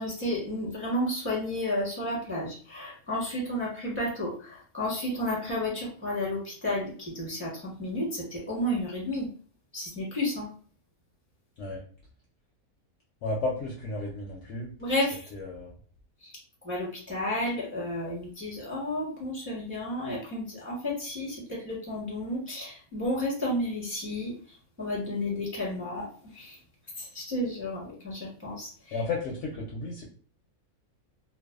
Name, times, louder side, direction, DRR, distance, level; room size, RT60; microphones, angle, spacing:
voice 1, 0.0-9.3 9.7-10.5 14.8-15.3 16.2-16.3 16.6-24.3 24.8-26.6 27.0-29.0, left 1 dB, 10° right, -6 dB, 0.7 m, -32 dB
voice 2, 13.2-14.7 15.3-15.7 28.9-30.0, left 3 dB, 65° left, -2 dB, 0.7 m, -33 dB
2.5 x 2.1 x 2.3 m, 0.42 s
omnidirectional pair, 1.6 m